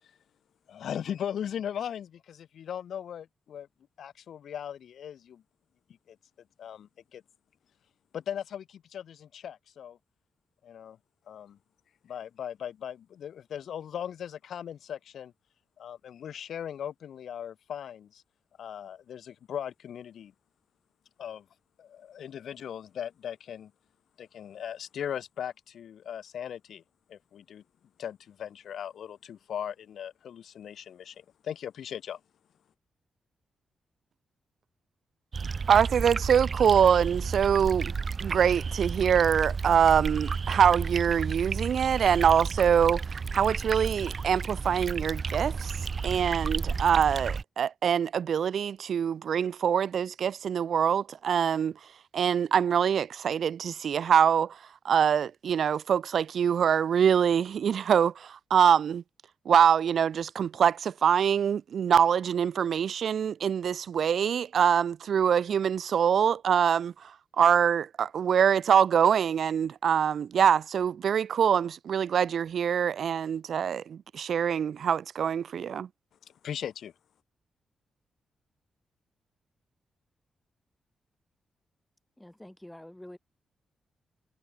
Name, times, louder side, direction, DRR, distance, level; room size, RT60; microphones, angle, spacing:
voice 1, 0.7-3.7 4.0-5.4 6.1-6.2 6.6-7.2 8.1-10.0 10.6-11.0 11.3-11.6 12.0-15.3 15.8-18.2 18.6-20.3 21.2-21.4 21.8-23.7 24.2-26.8 27.1-27.6 28.0-32.2 76.4-76.9, left 9 dB, 75° left, 2.8 m, -38 dB
sound 1, 35.3-47.4, right 5 dB, 40° right, 1.6 m, -32 dB
voice 2, 35.7-37.9 38.2-45.7 46.0-51.7 52.1-54.6 54.8-59.0 59.5-67.1 67.4-75.9, right 8 dB, 65° right, 0.3 m, -24 dB
voice 3, 82.2-83.2, left 1 dB, 5° left, 5.3 m, -47 dB
wide cardioid pair, 135°, 0 cm